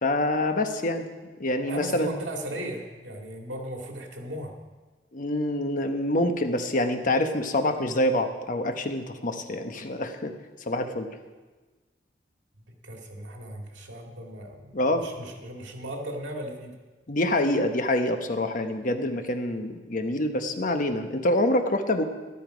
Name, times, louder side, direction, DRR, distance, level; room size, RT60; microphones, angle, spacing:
voice 1, 0.0-1.1 1.4-2.1 5.1-10.3 10.7-11.1 14.7-15.1 17.1-22.0, left 1 dB, 50° left, 6 dB, 1.0 m, -26 dB
voice 2, 1.7-4.6 12.7-16.8, right 1 dB, 85° right, 1 dB, 2.4 m, -37 dB
12.5 x 12.5 x 5.1 m, 1.3 s
head